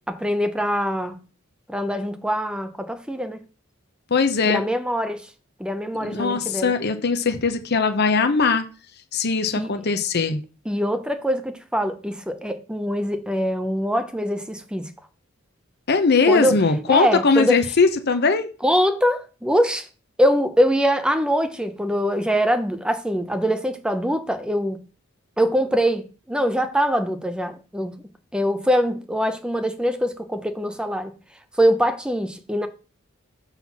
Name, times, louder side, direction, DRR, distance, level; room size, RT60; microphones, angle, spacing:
voice 1, 0.1-1.2 1.7-3.4 4.4-5.3 5.6-6.7 9.6-9.7 10.7-14.9 16.3-16.6 16.9-17.6 18.6-19.9 20.2-24.8 25.4-28.0 28.3-31.1 31.6-32.7, equal, 5° right, 0.7 m, -23 dB
voice 2, 4.1-4.6 6.0-8.6 9.1-10.4 15.9-18.5, left 4 dB, 55° left, 0.8 m, -20 dB
5.8 x 4.1 x 5.8 m
head